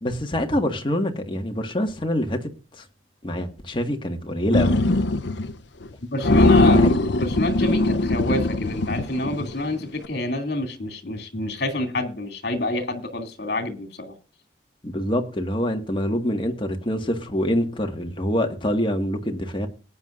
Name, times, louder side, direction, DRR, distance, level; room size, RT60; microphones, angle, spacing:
voice 1, 0.0-2.4 2.8-2.9 3.2-4.8 6.6-7.0 14.8-19.7, equal, 25° left, 1.8 m, -25 dB
sound 1, 4.5-5.5 5.8-5.9 6.2-9.6, left 2 dB, 75° left, 0.8 m, -20 dB
voice 2, 6.1-6.8 7.2-14.1, left 1 dB, 60° left, 2.7 m, -27 dB
19.0 x 9.7 x 2.5 m
head